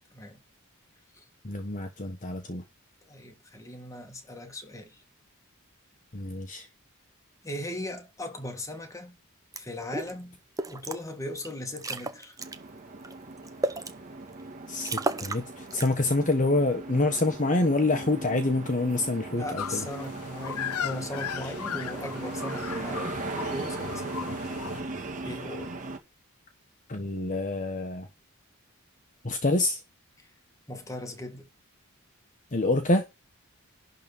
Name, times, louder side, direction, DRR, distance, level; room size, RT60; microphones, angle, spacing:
voice 1, 1.4-2.6 6.1-6.7 14.7-19.9 26.9-28.1 29.2-29.8 32.5-33.0, left 2 dB, 35° left, 1.2 m, -26 dB
voice 2, 3.1-5.0 6.5-6.7 7.4-9.2 9.5-10.4 10.7-12.4 19.3-24.4 25.2-25.8 30.2-30.3 30.7-31.5, left 1 dB, 15° left, 2.0 m, -38 dB
sound 1, 9.5-9.6 9.9-10.1 10.6-11.0 11.4-11.5 11.8-12.6 13.0-13.9 14.4-14.5 14.8-15.4 15.7-16.1, right 2 dB, 15° right, 0.9 m, -32 dB
sound 2, 12.4-26.0, right 3 dB, 35° right, 1.9 m, -38 dB
sound 3, 19.6-24.8, left 8 dB, 90° left, 0.6 m, -37 dB
11.5 x 4.0 x 7.4 m
head